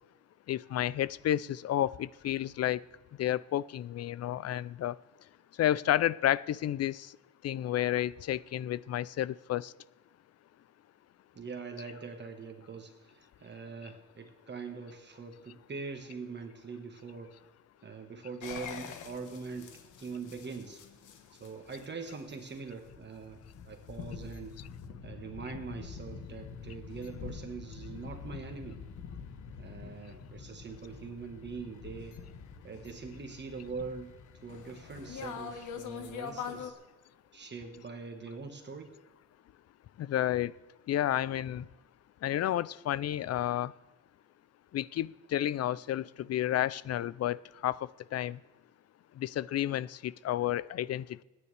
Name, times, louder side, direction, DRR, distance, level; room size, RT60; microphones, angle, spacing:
voice 1, 0.5-2.8 3.2-5.0 5.6-7.1 7.4-9.7 40.0-40.5 40.9-41.7 42.2-43.7 44.7-47.4 47.6-47.8 48.1-48.4 49.2-51.2, left 12 dB, 55° left, 19 dB, 0.5 m, -31 dB
voice 2, 11.3-17.3 17.8-19.7 20.0-20.8 21.3-23.4 23.6-24.6 25.0-28.8 29.6-32.2 32.6-34.1 34.4-36.7 37.3-38.9, right 4 dB, 35° right, 4 dB, 1.4 m, -43 dB
sound 1, 18.4-36.7, left 6 dB, 85° left, 1.4 m, -45 dB
26.5 x 9.8 x 3.3 m, 1.1 s
wide cardioid pair, 145°, 30 cm